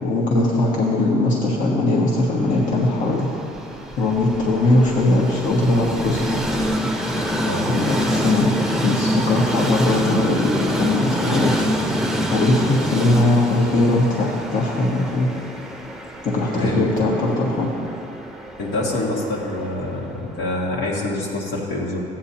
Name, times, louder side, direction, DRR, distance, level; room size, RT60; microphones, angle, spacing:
voice 1, 0.0-3.3 4.0-6.4 7.7-8.5 8.8-11.5 12.3-15.3 16.2-17.7, left 2 dB, 50° left, -5 dB, 1.5 m, -20 dB
Train, 2.4-20.4, equal, 5° right, 0.7 m, -26 dB
voice 2, 16.5-16.9 18.6-22.0, left 1 dB, 75° left, -5 dB, 2.3 m, -26 dB
14.0 x 8.8 x 2.9 m, 2.7 s
cardioid pair, 110°, 17 cm